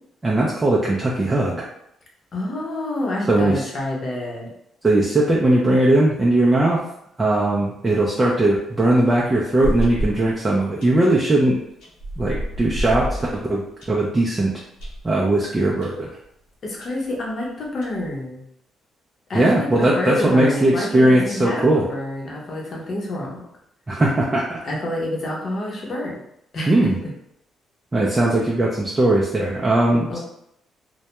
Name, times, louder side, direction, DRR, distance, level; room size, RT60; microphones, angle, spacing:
voice 1, 0.2-1.7 3.3-3.7 4.8-6.8 7.2-11.6 12.2-14.5 15.0-16.1 19.3-21.9 23.9-24.6 26.7-27.0 27.9-30.2, right 1 dB, 20° right, -4 dB, 0.4 m, -19 dB
voice 2, 2.3-4.5 16.6-18.4 19.3-23.4 24.6-26.2 26.5-27.1 30.1-30.2, left 1 dB, 50° left, -2 dB, 0.8 m, -28 dB
sound 1, 9.1-10.3 10.8-11.1 11.8-13.9 14.4-14.5 14.8-15.1 15.8-15.9 16.2-16.3 16.8-16.9 17.6-18.1, equal, 90° left, 0.8 m, -28 dB
2.2 x 2.1 x 2.9 m, 0.76 s
cardioid pair, 90°, 0 cm